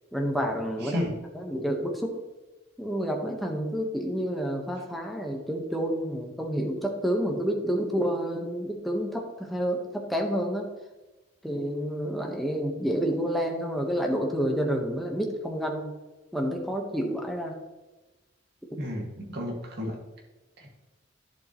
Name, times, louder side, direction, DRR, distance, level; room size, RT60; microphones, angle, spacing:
voice 1, 0.1-1.1 1.3-2.1 2.8-10.7 11.4-16.0 16.3-17.6, equal, ahead, 1 dB, 1.1 m, -29 dB
voice 2, 0.8-1.1 18.8-20.0 20.6-20.7, left 1 dB, 55° right, 0 dB, 2.0 m, -32 dB
11.0 x 7.4 x 3.0 m, 1.1 s
head